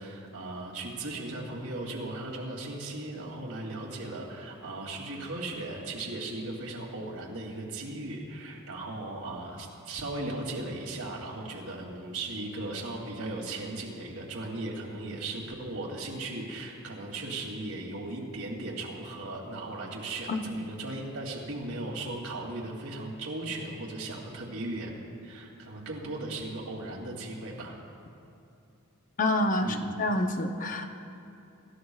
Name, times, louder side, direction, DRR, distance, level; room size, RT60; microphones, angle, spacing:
voice 1, 0.0-24.9 25.2-27.8 29.6-29.9, right 2 dB, 75° right, -2 dB, 2.9 m, -37 dB
voice 2, 29.2-30.8, left 1 dB, 35° left, 5 dB, 0.8 m, -27 dB
26.0 x 14.0 x 2.4 m, 2.8 s
head